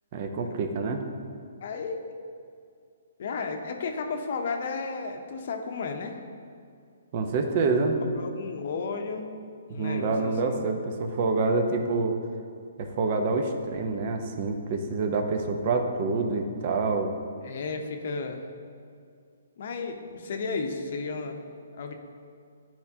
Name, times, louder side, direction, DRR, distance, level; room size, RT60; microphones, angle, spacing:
voice 1, 0.1-1.0 7.1-8.0 9.8-12.2 12.8-17.1, right 3 dB, 40° right, 5 dB, 0.6 m, -27 dB
voice 2, 1.6-2.0 3.2-6.2 8.0-9.3 9.7-10.7 17.4-18.5 19.6-21.4 21.7-21.9, left 4 dB, 55° left, 5 dB, 0.7 m, -33 dB
10.5 x 4.4 x 2.8 m, 2.3 s
hypercardioid pair, 150°, 0 cm